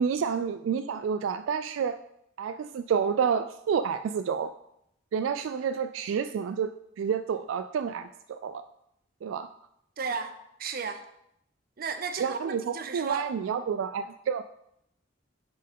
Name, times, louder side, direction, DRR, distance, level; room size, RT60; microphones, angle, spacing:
voice 1, 0.0-2.0 2.4-4.5 5.1-6.7 7.0-8.6 9.2-9.5 12.2-14.4, right 6 dB, 80° right, 10 dB, 0.3 m, -29 dB
voice 2, 10.0-10.3 10.6-11.0 11.8-13.3, right 5 dB, 45° right, 8 dB, 0.6 m, -34 dB
10.0 x 4.4 x 3.6 m, 0.77 s
head